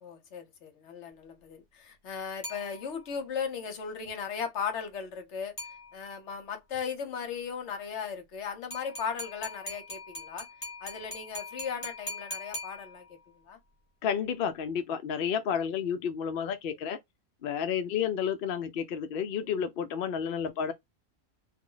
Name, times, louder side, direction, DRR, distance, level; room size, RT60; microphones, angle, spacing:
voice 1, 0.0-5.5 5.9-10.5 10.8-13.0 13.5-13.6, left 6 dB, 55° left, 1.0 m, -37 dB
sound 1, 2.4-3.3 5.6-6.3 8.7-13.3, left 1 dB, 30° left, 1.1 m, -42 dB
voice 2, 14.0-17.0 17.4-20.7, left 7 dB, 75° left, 0.5 m, -31 dB
2.6 x 2.0 x 3.8 m
omnidirectional pair, 1.5 m